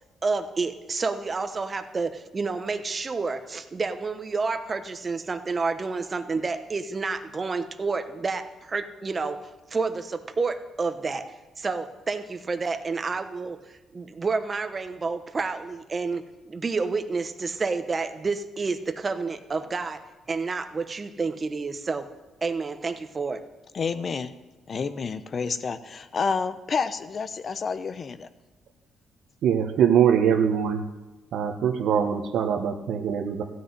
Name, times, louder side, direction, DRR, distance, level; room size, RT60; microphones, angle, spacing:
voice 1, 0.2-9.4 9.7-11.2 11.6-13.6 13.9-20.0 20.3-22.1 22.4-23.4, right 4 dB, 30° right, 9 dB, 1.1 m, -29 dB
voice 2, 23.7-24.3 24.7-28.3, left 5 dB, 45° left, 12 dB, 0.8 m, -29 dB
voice 3, 29.4-30.8 31.3-33.4, right 8 dB, 75° right, 5 dB, 1.4 m, -22 dB
14.5 x 6.4 x 9.7 m, 1.1 s
cardioid pair, 90°, 0 cm